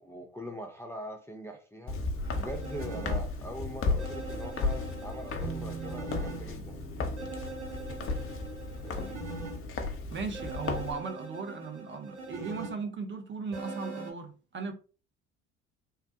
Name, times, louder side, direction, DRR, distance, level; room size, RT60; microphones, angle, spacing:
voice 1, 0.0-2.0 2.3-6.7 8.7-9.2, right 1 dB, 5° left, 0.5 m, -42 dB
Walk footsteps, 1.9-10.9, left 3 dB, 35° left, 0.8 m, -35 dB
sound 1, 2.2-3.2 4.0-6.4 7.2-9.6 10.3-12.7 13.5-14.1, right 3 dB, 75° right, 1.2 m, -42 dB
sound 2, 5.4-11.0, right 8 dB, 90° right, 0.5 m, -46 dB
voice 2, 10.1-14.7, right 4 dB, 30° right, 0.7 m, -37 dB
3.4 x 2.2 x 2.7 m
hypercardioid pair, 60°, 36 cm